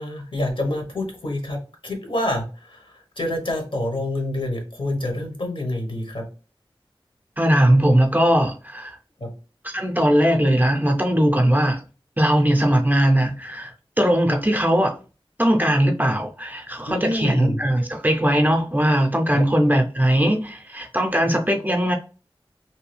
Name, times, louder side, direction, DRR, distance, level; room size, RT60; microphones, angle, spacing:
voice 1, 0.0-6.3 9.2-9.3 16.9-17.6 19.3-19.4, left 1 dB, 65° left, 0.8 m, -27 dB
voice 2, 7.4-9.0 9.6-11.8 12.2-13.7 14.0-14.9 15.4-21.9, equal, 20° right, 0.5 m, -19 dB
2.6 x 2.2 x 3.2 m
wide cardioid pair, 55°, 10 cm